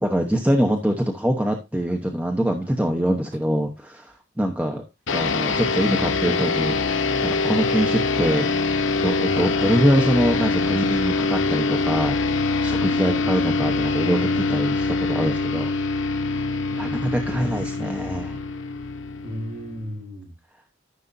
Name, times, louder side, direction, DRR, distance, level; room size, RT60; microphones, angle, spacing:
voice 1, 0.0-4.8 5.1-6.8 7.2-8.5 9.0-15.7 16.8-18.4, equal, 5° right, 0.9 m, -24 dB
sound 1, 5.1-19.9, left 3 dB, 70° left, 0.9 m, -24 dB
voice 2, 19.2-20.3, equal, 45° right, 4.7 m, -36 dB
13.5 x 6.5 x 2.6 m
head